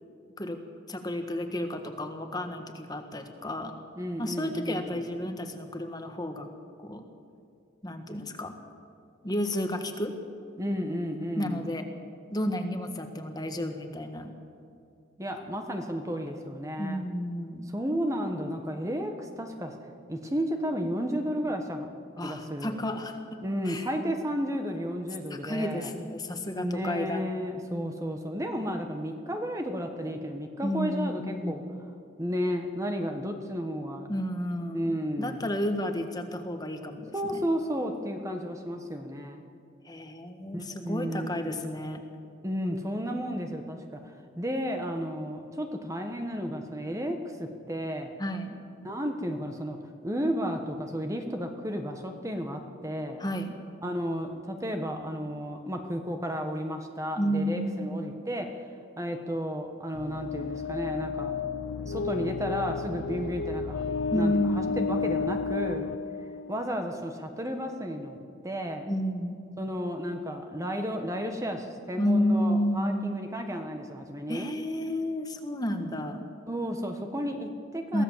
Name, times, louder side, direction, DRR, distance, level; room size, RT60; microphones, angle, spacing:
voice 1, 0.9-3.7 4.2-6.5 6.8-7.0 7.8-8.5 9.2-10.2 11.4-11.8 12.3-14.3 16.8-17.6 22.2-23.2 23.6-23.9 25.3-27.3 30.6-31.6 34.1-37.5 39.8-42.0 48.2-48.6 53.2-53.5 57.2-58.2 64.1-65.0 68.9-69.4 72.0-73.2 74.3-76.2 77.9-78.0, equal, 20° left, 5 dB, 1.5 m, -31 dB
voice 2, 4.0-5.0 10.6-11.7 15.2-17.0 17.7-19.7 20.1-21.9 22.2-22.8 23.4-25.9 26.6-31.6 32.2-34.1 34.7-35.5 37.1-39.4 40.5-41.6 42.4-48.1 48.8-49.8 50.0-53.2 53.8-58.7 59.0-61.3 61.8-63.8 64.1-64.6 64.9-65.9 66.5-68.2 68.4-68.9 69.6-74.5 76.5-78.0, equal, 15° right, 4 dB, 1.3 m, -33 dB
sound 1, 59.9-66.9, left 5 dB, 80° left, 0.5 m, -32 dB
23.0 x 16.0 x 7.4 m, 2.5 s
head